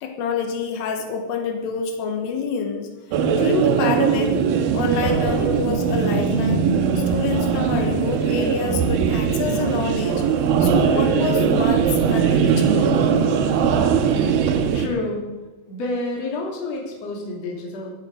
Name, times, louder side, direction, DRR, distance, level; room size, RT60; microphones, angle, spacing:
voice 1, 0.0-2.9 3.4-4.3 4.7-6.6 7.1-10.2 10.6-13.1, left 5 dB, 85° left, 4 dB, 4.0 m, -27 dB
sound 1, 3.1-14.9, right 6 dB, 80° right, 2.1 m, -20 dB
voice 2, 13.7-14.2 14.7-15.3 15.7-17.9, left 2 dB, 40° left, -1 dB, 3.3 m, -29 dB
14.5 x 12.0 x 5.4 m, 1.2 s
omnidirectional pair, 5.7 m